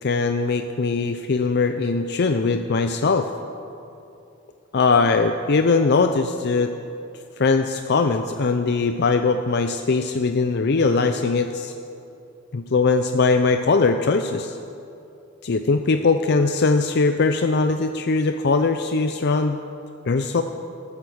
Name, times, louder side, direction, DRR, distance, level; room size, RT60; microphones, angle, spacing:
voice 1, 0.0-3.3 4.7-6.7 7.4-11.7 12.5-14.6 15.4-19.6 20.1-20.4, left 4 dB, 55° left, 7 dB, 0.5 m, -21 dB
14.0 x 13.5 x 6.4 m, 2.7 s
head